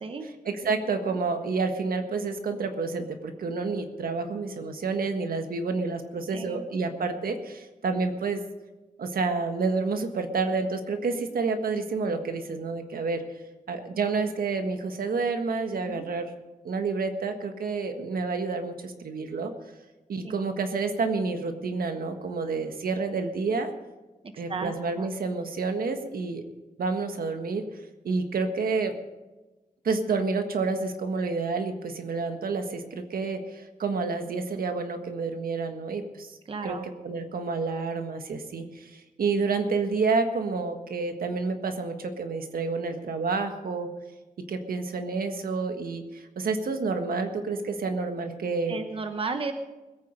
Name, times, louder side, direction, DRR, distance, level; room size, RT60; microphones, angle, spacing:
voice 1, 0.4-8.4 9.0-13.3 13.7-16.3 16.6-19.5 20.1-23.7 24.4-26.4 26.8-27.6 28.0-28.9 29.8-36.4 36.6-36.7 37.0-43.9 44.5-48.8, right 4 dB, 85° right, 6 dB, 1.5 m, -29 dB
voice 2, 6.3-6.6 15.8-16.1 20.2-20.3 24.2-25.1 36.5-36.9 48.7-49.5, right 4 dB, 40° right, 7 dB, 0.9 m, -34 dB
20.5 x 8.9 x 5.3 m, 1.1 s
wide cardioid pair, 165°, 15 cm